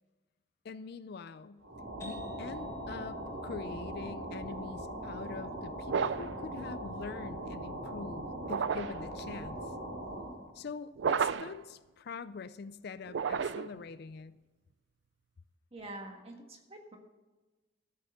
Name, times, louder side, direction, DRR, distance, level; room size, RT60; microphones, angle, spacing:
voice 1, 0.6-1.6 2.0-9.7 10.5-14.3, left 5 dB, 55° left, 14 dB, 0.4 m, -44 dB
sound 1, 1.6-10.5, right 1 dB, 85° right, 4.6 m, -41 dB
sound 2, 2.0-9.4, left 4 dB, 15° left, 1.7 m, -54 dB
sound 3, 5.9-6.4 8.4-9.1 11.0-11.6 13.1-13.8, right 6 dB, 60° right, 0.4 m, -32 dB
voice 2, 15.7-17.0, right 2 dB, 30° right, 3 dB, 1.6 m, -46 dB
13.0 x 6.7 x 6.7 m, 1.2 s
head